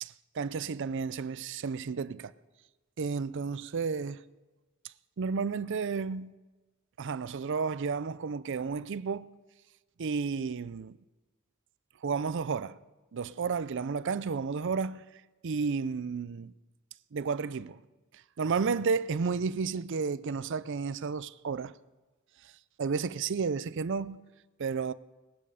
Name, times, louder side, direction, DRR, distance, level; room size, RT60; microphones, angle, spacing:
voice 1, 0.0-2.3 3.0-4.2 4.8-6.3 7.0-9.3 10.0-11.0 12.0-12.8 13.1-15.0 15.4-16.5 17.1-17.8 18.4-21.8 22.4-22.5 22.8-24.2 24.6-24.9, right 5 dB, 60° right, 0.5 m, -32 dB
19.0 x 12.0 x 5.0 m
head